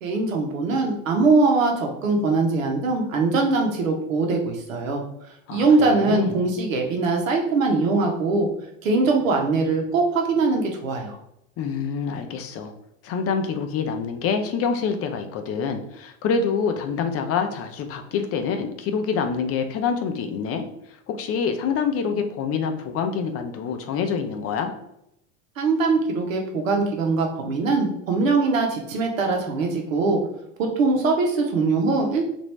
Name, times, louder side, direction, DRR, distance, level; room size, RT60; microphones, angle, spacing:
voice 1, 0.0-5.0 5.5-8.5 8.8-11.2 25.6-30.2 30.6-32.3, right 3 dB, 85° right, 2 dB, 0.9 m, -22 dB
voice 2, 5.5-6.3 11.6-12.7 13.0-20.6 21.1-24.7, left 6 dB, 40° left, 6 dB, 0.5 m, -26 dB
2.9 x 2.6 x 3.1 m, 0.78 s
hypercardioid pair, 90°, 39 cm